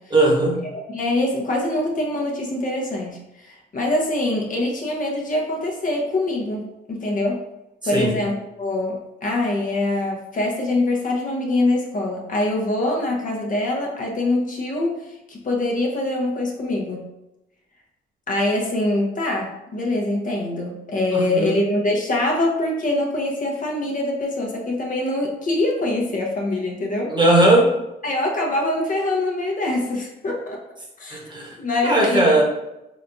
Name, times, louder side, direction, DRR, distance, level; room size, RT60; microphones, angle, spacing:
voice 1, 0.1-0.6 7.9-8.2 21.1-21.5 27.1-27.7 31.1-31.6 31.8-32.4, right 1 dB, 20° right, -2 dB, 1.2 m, -18 dB
voice 2, 0.7-7.4 7.9-17.0 18.3-27.1 28.0-30.6 31.0-31.2 31.6-32.4, left 2 dB, 40° left, -1 dB, 0.9 m, -24 dB
4.0 x 3.3 x 2.6 m, 0.92 s
cardioid pair, 90°, 20 cm